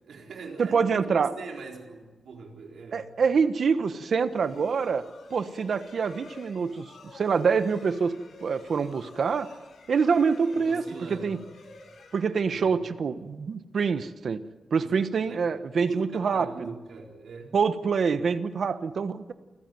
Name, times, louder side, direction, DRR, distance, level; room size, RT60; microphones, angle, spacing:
voice 1, 0.0-0.8 1.2-3.1 10.6-11.4 12.4-12.8 14.8-14.9 15.3-15.5 15.8-17.5, right 4 dB, 85° right, 1 dB, 4.2 m, -41 dB
voice 2, 0.6-1.3 2.9-5.0 5.3-6.9 7.1-8.2 8.4-9.5 9.9-10.8 11.1-11.4 12.1-14.4 14.7-16.7 17.5-19.3, right 5 dB, 65° right, 11 dB, 1.2 m, -25 dB
sound 1, 4.1-12.9, left 3 dB, 85° left, 6.2 m, -50 dB
28.5 x 15.0 x 9.2 m, 1.2 s
wide cardioid pair, 120°, 0 cm